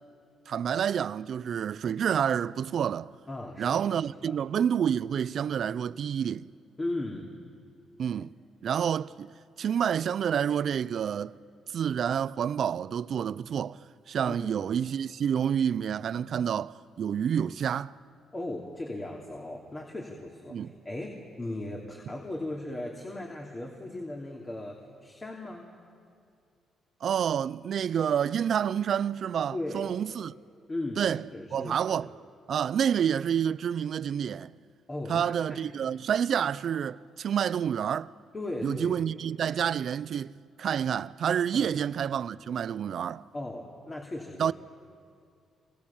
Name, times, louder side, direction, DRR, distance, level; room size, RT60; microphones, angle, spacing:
voice 1, 0.5-3.1 3.6-6.5 8.0-8.3 8.6-9.3 9.6-11.3 11.7-13.8 14.1-17.9 20.5-20.7 27.0-30.3 31.0-31.2 31.5-32.1 32.5-34.5 35.1-38.1 38.6-40.3 40.6-43.2 44.4-44.5, right 8 dB, 60° right, 0.6 m, -28 dB
voice 2, 3.3-4.4 6.8-7.3 14.3-14.6 18.3-25.6 29.5-29.9 30.7-32.1 34.9-35.7 38.3-39.2 41.5-41.7 43.3-44.5, left 1 dB, 25° left, 3.0 m, -37 dB
28.0 x 26.5 x 7.3 m
cardioid pair, 90°, 0 cm